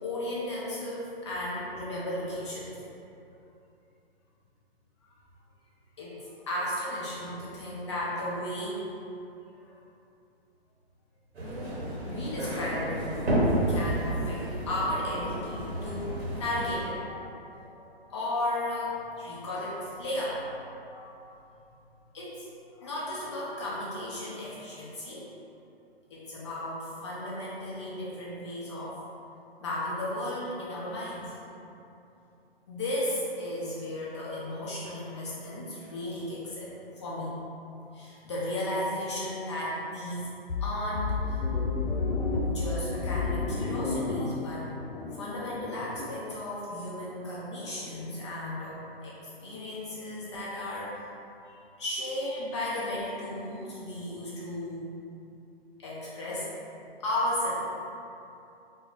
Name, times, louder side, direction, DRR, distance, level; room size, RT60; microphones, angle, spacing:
voice 1, 0.0-2.7 6.0-8.9 9.6-9.7 12.1-13.3 13.7-21.1 22.1-22.5 22.8-25.3 26.1-29.0 29.6-31.3 32.7-37.4 37.9-40.3 40.6-41.4 41.8-42.0 42.5-44.7 45.1-51.0 51.4-54.9 55.8-56.4 57.0-57.7, left 1 dB, 30° left, -7 dB, 0.5 m, -35 dB
sound 1, 11.3-16.8, right 1 dB, 85° right, 1.0 m, -31 dB
sound 2, 40.5-46.1, left 3 dB, 90° left, 0.5 m, -31 dB
4.3 x 2.0 x 3.0 m, 2.8 s
hypercardioid pair, 135°, 31 cm